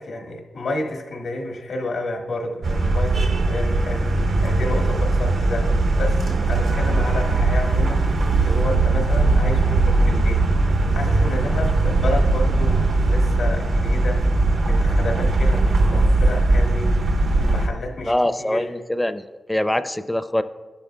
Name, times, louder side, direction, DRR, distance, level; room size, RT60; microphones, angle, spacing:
voice 1, 0.0-4.1 4.4-10.4 10.9-14.2 14.6-16.9 17.4-18.7, left 2 dB, 85° left, 0 dB, 1.5 m, -30 dB
sound 1, 2.6-17.7, right 2 dB, 85° right, 1.0 m, -19 dB
voice 2, 18.1-20.4, left 1 dB, 10° left, 11 dB, 0.4 m, -23 dB
12.5 x 10.5 x 2.3 m, 1.3 s
cardioid pair, 85°, 0 cm